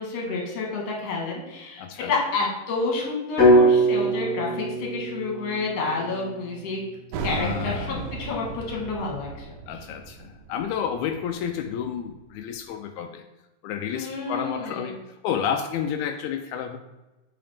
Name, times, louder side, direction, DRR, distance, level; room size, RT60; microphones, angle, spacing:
voice 1, 0.0-6.8 7.2-9.5 13.9-14.9, left 3 dB, 55° left, -1 dB, 2.2 m, -29 dB
voice 2, 1.8-2.2 7.3-8.1 9.7-13.2 13.6-16.8, left 8 dB, 85° left, 5 dB, 1.7 m, -30 dB
sound 1, 3.4-7.4, right 1 dB, 30° left, 2.4 m, -22 dB
sound 2, 7.1-12.4, right 5 dB, 75° right, 1.8 m, -36 dB
7.7 x 4.8 x 3.4 m, 1.0 s
omnidirectional pair, 3.9 m